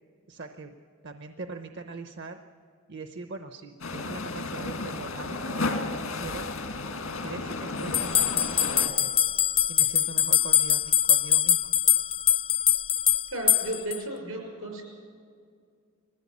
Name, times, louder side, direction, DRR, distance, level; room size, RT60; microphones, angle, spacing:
voice 1, 0.3-0.8 1.0-2.4 2.9-6.5 7.2-9.1 9.7-11.6, right 3 dB, 55° right, 7 dB, 0.8 m, -41 dB
sound 1, 3.8-8.9, left 3 dB, 80° left, 1.8 m, -33 dB
sound 2, 7.9-14.0, left 10 dB, 25° left, 0.4 m, -23 dB
voice 2, 13.3-14.8, right 1 dB, 80° right, 2 dB, 6.2 m, -34 dB
21.0 x 15.0 x 8.5 m, 2.2 s
head